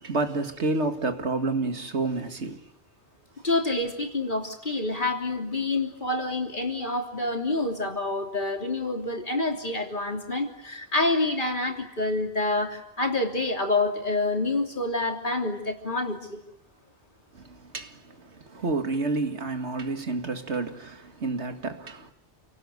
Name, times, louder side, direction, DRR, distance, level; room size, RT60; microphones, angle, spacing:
voice 1, 0.0-2.6 17.3-22.1, right 3 dB, 85° right, 2.2 m, -29 dB
voice 2, 3.4-16.4, left 2 dB, 45° left, 3.3 m, -27 dB
29.0 x 18.5 x 9.5 m
omnidirectional pair, 1.1 m